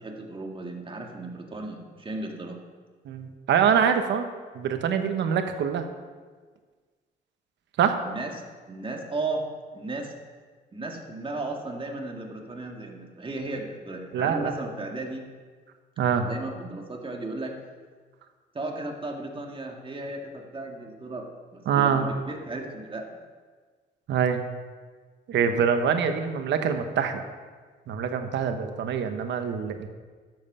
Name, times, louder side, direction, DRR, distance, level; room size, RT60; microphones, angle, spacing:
voice 1, 0.0-2.6 8.0-8.3 8.7-9.4 9.7-10.1 10.7-15.3 16.2-17.6 18.5-21.3 21.5-23.2, right 2 dB, 30° right, 1 dB, 1.9 m, -35 dB
voice 2, 3.0-4.3 4.5-5.9 7.8-8.0 14.1-14.6 16.0-16.3 21.7-22.1 24.1-24.4 25.3-27.2 27.9-29.9, right 7 dB, 85° right, 7 dB, 1.0 m, -24 dB
12.5 x 7.7 x 5.5 m, 1.5 s
cardioid pair, 95°, 18 cm